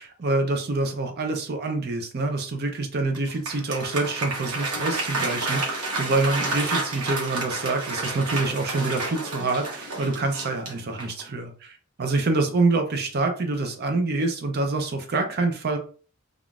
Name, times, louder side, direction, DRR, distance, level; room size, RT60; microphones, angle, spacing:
voice 1, 0.0-15.8, right 3 dB, 45° right, 5 dB, 0.5 m, -26 dB
Applause, 3.1-11.3, right 2 dB, 85° right, 1.1 m, -30 dB
3.5 x 2.4 x 2.3 m, 0.40 s
head